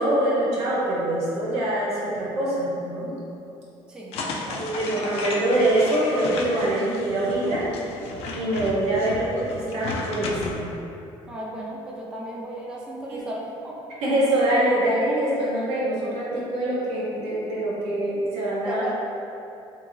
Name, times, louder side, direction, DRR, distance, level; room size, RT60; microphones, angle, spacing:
voice 1, 0.0-3.1 4.6-7.6 8.3-10.7 13.1-13.2 14.0-18.8, right 1 dB, 80° right, -7 dB, 0.9 m, -24 dB
voice 2, 3.9-5.1 11.3-13.8 18.6-18.9, right 1 dB, 10° right, -4 dB, 0.3 m, -35 dB
sound 1, 4.1-10.5, left 3 dB, 70° left, 0.4 m, -34 dB
2.9 x 2.7 x 2.6 m, 2.8 s
cardioid pair, 130°, 10 cm